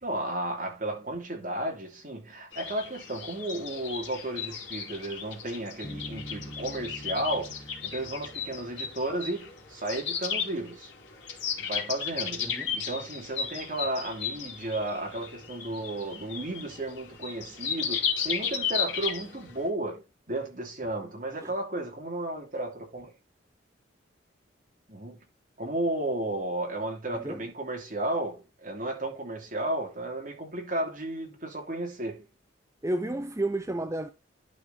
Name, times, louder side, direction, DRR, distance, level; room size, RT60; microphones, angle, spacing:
voice 1, 0.0-10.9 11.6-12.5 12.7-23.1 24.9-25.2 25.6-32.3, right 1 dB, 40° right, 3.0 m, -33 dB
sound 1, 2.5-19.6, left 7 dB, 60° left, 2.9 m, -35 dB
Bass guitar, 5.8-9.5, equal, 20° left, 1.1 m, -45 dB
voice 2, 32.8-34.1, right 1 dB, 15° right, 0.5 m, -31 dB
11.5 x 5.0 x 4.1 m
head